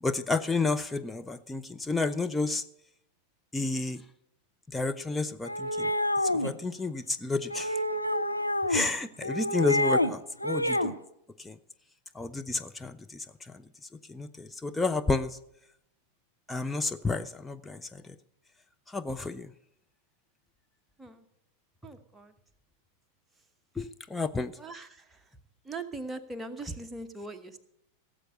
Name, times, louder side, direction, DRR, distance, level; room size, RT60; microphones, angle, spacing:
voice 1, 0.0-2.6 3.5-4.0 4.7-5.9 6.2-7.8 8.7-10.9 11.4-11.6 12.1-13.6 14.1-15.4 16.5-18.2 18.9-19.5 23.8-24.6, left 3 dB, 10° left, 8 dB, 0.5 m, -31 dB
sound 1, 5.4-6.5 7.5-8.9 9.2-10.1 10.4-10.9, left 1 dB, 85° left, 0.6 m, -28 dB
voice 2, 21.8-22.3 24.6-24.9 25.7-27.6, right 2 dB, 10° right, 6 dB, 1.1 m, -40 dB
17.0 x 7.5 x 6.7 m, 0.78 s
figure-of-eight pair, 90°, 0 cm